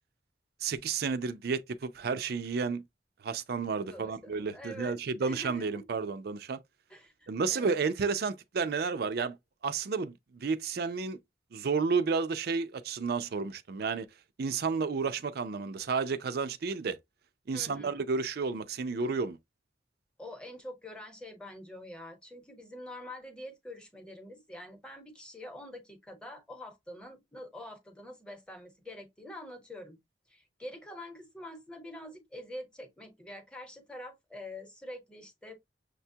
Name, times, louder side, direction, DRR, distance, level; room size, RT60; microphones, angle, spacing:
voice 1, 0.6-2.8 3.2-6.6 7.3-9.4 9.6-11.2 11.5-14.1 14.4-17.0 17.5-19.4, right 5 dB, 60° right, 0.4 m, -31 dB
voice 2, 3.8-5.8 6.9-7.8 17.5-18.1 20.2-30.0 30.3-35.5, left 1 dB, 5° left, 1.0 m, -46 dB
6.5 x 2.2 x 2.7 m
head